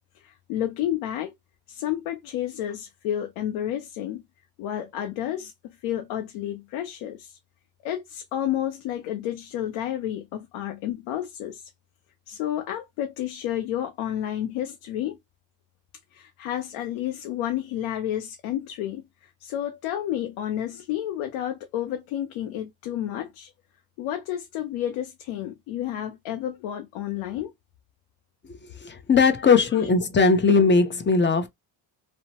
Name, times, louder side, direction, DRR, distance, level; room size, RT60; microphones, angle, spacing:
voice 1, 0.1-1.3 1.7-4.2 4.6-7.4 7.8-11.7 12.3-15.2 16.1-23.5 24.0-27.5 29.4-29.9, left 11 dB, 90° left, 0.6 m, -31 dB
voice 2, 28.8-31.5, left 4 dB, 25° left, 0.6 m, -19 dB
2.9 x 2.1 x 2.8 m
cardioid pair, 90°, 48 cm